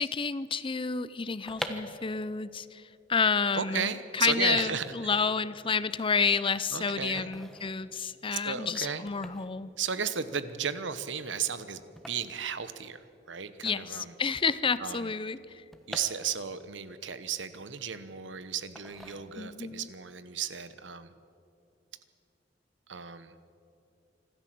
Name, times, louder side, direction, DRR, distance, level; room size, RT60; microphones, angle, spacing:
voice 1, 0.0-2.8 3.1-9.7 13.6-15.6 19.4-19.9, left 5 dB, 30° left, 16 dB, 0.6 m, -30 dB
sound 1, 1.2-13.3 13.6-13.7 13.9-16.7 17.2-18.2 18.7-19.7 20.1-20.4, equal, ahead, 1.3 m, -46 dB
voice 2, 3.5-5.2 6.7-7.3 8.3-9.1 9.8-14.1 14.8-15.1 15.9-21.1 22.9-23.3, right 7 dB, 75° right, 13 dB, 1.1 m, -35 dB
26.0 x 13.0 x 7.7 m, 2.6 s
head